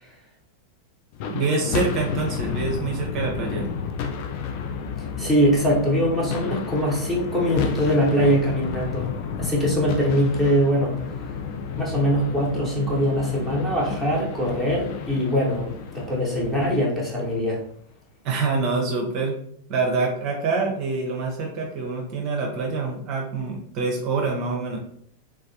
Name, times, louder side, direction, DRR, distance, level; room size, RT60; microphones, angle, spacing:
sound 1, 1.1-17.5, left 6 dB, 45° left, 0.3 m, -31 dB
voice 1, 1.3-3.7 18.2-19.4 19.7-24.8, right 4 dB, 40° right, 1 dB, 0.6 m, -26 dB
voice 2, 5.2-9.1 9.4-11.0 11.7-17.6, equal, 10° left, -4 dB, 1.0 m, -22 dB
3.2 x 2.3 x 2.6 m, 0.65 s
figure-of-eight pair, 90°, 0 cm